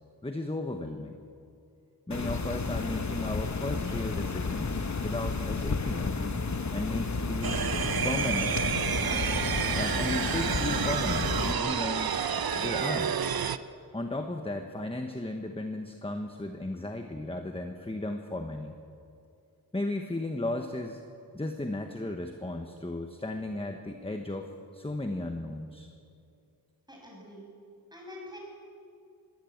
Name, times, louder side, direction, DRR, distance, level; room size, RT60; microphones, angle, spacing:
voice 1, 0.2-1.2 2.1-6.1 6.7-7.6 8.0-8.6 9.7-12.2 12.5-13.2 13.9-18.7 19.7-21.0 21.3-25.9, left 2 dB, 15° left, 5 dB, 1.2 m, -35 dB
sound 1, 2.1-11.5, left 4 dB, 45° left, 1.2 m, -32 dB
sound 2, 7.4-13.6, right 7 dB, 65° right, 0.8 m, -29 dB
voice 2, 26.9-27.5 27.9-28.4, left 1 dB, 10° right, -1 dB, 6.8 m, -45 dB
21.5 x 16.0 x 8.0 m, 2.5 s
wide cardioid pair, 85°, 39 cm